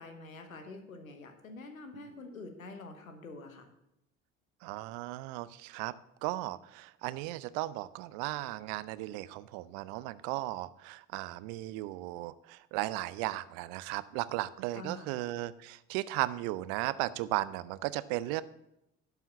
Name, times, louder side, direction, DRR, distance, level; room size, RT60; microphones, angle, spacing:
voice 1, 0.0-3.6 14.7-15.2, left 3 dB, 90° left, 7 dB, 1.2 m, -46 dB
voice 2, 4.6-5.9 6.2-18.4, right 17 dB, 65° right, 17 dB, 0.6 m, -36 dB
12.0 x 5.6 x 6.0 m, 0.83 s
hypercardioid pair, 55°, 40 cm